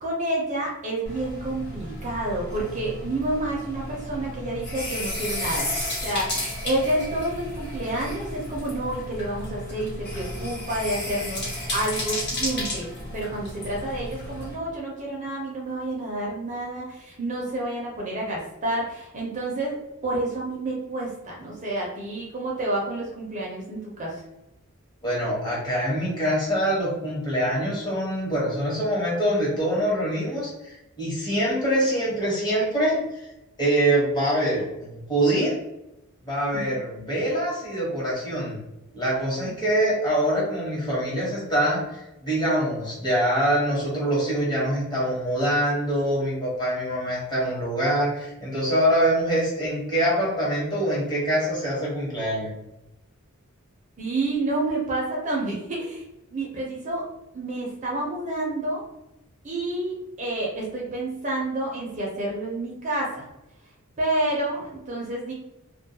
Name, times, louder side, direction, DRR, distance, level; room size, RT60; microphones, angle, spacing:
voice 1, 0.0-5.7 6.0-11.4 11.7-12.9 13.1-24.2 36.5-36.6 54.0-56.0 56.3-57.1 57.3-58.8 59.4-63.3 64.0-65.3, right 1 dB, 35° right, -3 dB, 0.5 m, -29 dB
sound 1, 1.0-14.5, left 1 dB, 50° left, 1.0 m, -33 dB
voice 2, 25.0-33.0 33.6-35.5 36.2-38.6 38.9-52.5, right 1 dB, 20° left, -6 dB, 1.0 m, -24 dB
2.2 x 2.1 x 2.7 m, 0.90 s
head